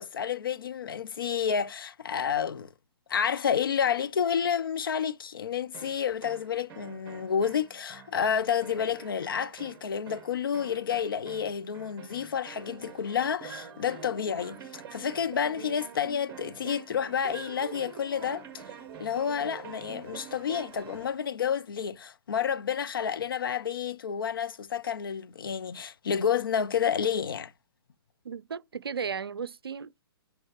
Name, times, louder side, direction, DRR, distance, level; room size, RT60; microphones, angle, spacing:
voice 1, 0.0-2.7 3.1-18.6 19.0-27.5, left 7 dB, 60° left, 0.6 m, -30 dB
sound 1, 5.7-21.2, right 7 dB, 20° right, 1.3 m, -46 dB
voice 2, 28.2-30.0, right 6 dB, 70° right, 0.4 m, -35 dB
6.2 x 4.8 x 3.2 m
figure-of-eight pair, 120°, 13 cm